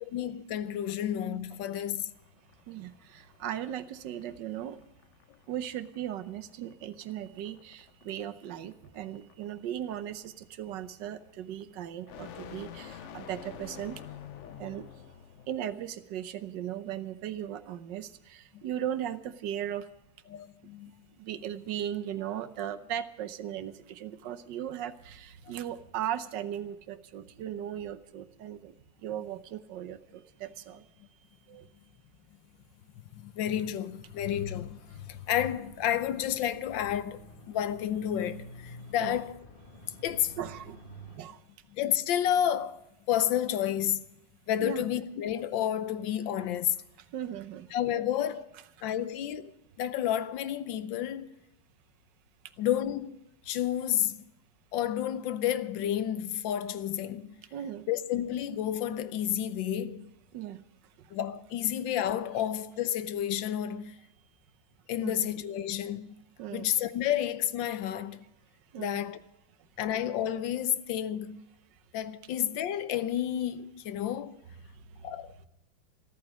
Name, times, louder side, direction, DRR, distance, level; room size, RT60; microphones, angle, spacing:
voice 1, 0.1-2.1 14.4-14.6 18.5-18.6 20.3-20.9 33.1-37.2 37.5-39.4 40.0-40.4 41.7-44.0 44.5-46.8 47.7-48.5 48.8-51.3 52.6-53.2 53.4-54.2 54.7-57.3 57.9-60.1 61.1-63.9 64.9-66.2 66.5-68.2 68.8-69.2 69.8-71.4 71.9-74.4 75.0-75.4, left 10 dB, 85° left, 1.5 m, -31 dB
sound 1, 2.1-15.6, left 9 dB, 60° left, 0.8 m, -50 dB
voice 2, 2.7-4.8 5.5-14.0 14.6-14.8 15.5-19.8 21.2-28.7 29.0-30.8 31.5-31.6 39.0-39.2 40.4-40.8 41.2-41.4 44.6-44.9 47.1-47.7 57.5-57.9 60.3-60.6 65.0-65.3 66.4-66.7 68.7-69.1, right 10 dB, 75° right, 1.4 m, -37 dB
sound 2, 34.0-41.2, equal, 30° left, 1.4 m, -50 dB
14.0 x 13.5 x 6.2 m
omnidirectional pair, 2.0 m